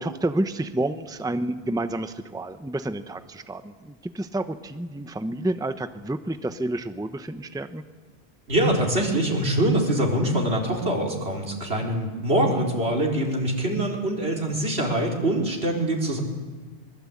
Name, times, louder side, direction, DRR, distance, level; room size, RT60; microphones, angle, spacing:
voice 1, 0.0-7.8, right 1 dB, 5° right, 10 dB, 0.8 m, -29 dB
voice 2, 8.5-16.2, right 1 dB, 85° right, 0 dB, 4.4 m, -24 dB
24.0 x 22.0 x 8.6 m, 1.4 s
omnidirectional pair, 1.0 m